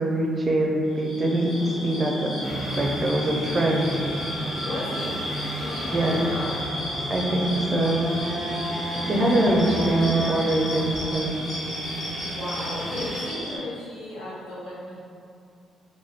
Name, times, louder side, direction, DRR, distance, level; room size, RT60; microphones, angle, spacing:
voice 1, 0.0-1.5 1.8-2.3 2.8-3.9 5.9-6.2 7.1-8.0 9.1-11.4, right 1 dB, 40° right, -1 dB, 0.5 m, -23 dB
sound 1, 0.9-13.6, left 1 dB, 50° left, 0.9 m, -33 dB
sound 2, 2.4-13.2, equal, 20° left, 1.2 m, -33 dB
voice 2, 4.6-5.2 5.6-6.5 12.2-15.0, left 1 dB, 75° left, -10 dB, 1.0 m, -35 dB
2.6 x 2.4 x 3.4 m, 2.4 s
cardioid pair, 90°, 0 cm